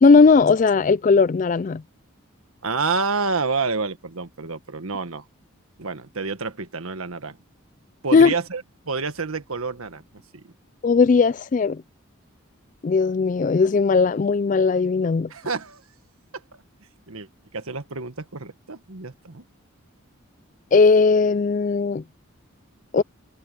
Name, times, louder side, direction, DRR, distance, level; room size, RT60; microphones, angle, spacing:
voice 1, 0.0-1.8 8.1-8.3 10.8-11.8 12.8-15.3 20.7-22.0 22.9-23.0, left 4 dB, 35° left, 0.3 m, -17 dB
voice 2, 2.6-5.2 5.8-7.4 8.0-10.0 10.3-10.4 15.3-15.8 17.1-19.4 22.9-23.0, right 4 dB, 80° right, 1.5 m, -28 dB
head